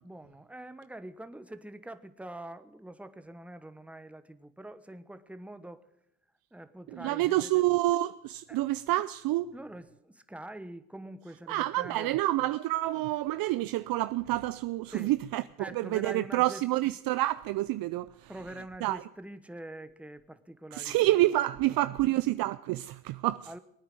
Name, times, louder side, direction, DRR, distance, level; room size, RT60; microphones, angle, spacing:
voice 1, 0.0-5.9 6.5-7.6 8.5-8.6 9.5-12.5 14.9-15.1 15.6-16.7 18.3-21.0 21.7-22.1 23.5-23.6, right 1 dB, 5° right, 1.1 m, -45 dB
voice 2, 7.0-9.5 11.5-18.1 18.8-19.0 20.7-23.5, right 16 dB, 55° right, 0.5 m, -28 dB
20.0 x 9.3 x 7.7 m
hypercardioid pair, 60°, 41 cm